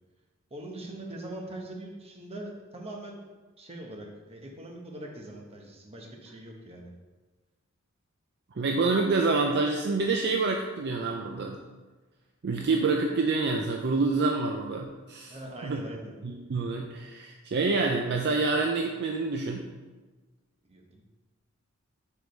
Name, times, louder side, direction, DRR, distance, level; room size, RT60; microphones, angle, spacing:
voice 1, 0.5-3.3 3.6-6.9 15.3-16.1 20.6-21.0, right 1 dB, 30° right, 0 dB, 1.0 m, -42 dB
voice 2, 8.6-11.6 12.4-15.3 15.6-15.8 16.2-19.7, right 3 dB, 50° right, 2 dB, 0.5 m, -27 dB
4.9 x 4.8 x 5.2 m, 1.3 s
head